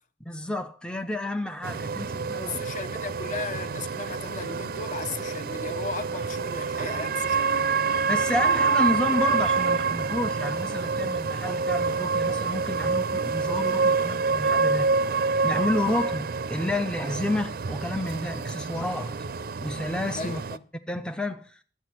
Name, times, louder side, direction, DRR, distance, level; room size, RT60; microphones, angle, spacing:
voice 1, 0.3-2.6 8.1-14.9 15.4-19.1 19.6-20.4 20.9-21.6, left 1 dB, 5° left, 0.5 m, -30 dB
sound 1, 1.6-20.6, right 4 dB, 55° right, 0.5 m, -27 dB
voice 2, 2.4-7.8 20.1-20.6, left 4 dB, 45° left, 0.8 m, -36 dB
11.5 x 8.1 x 5.8 m
head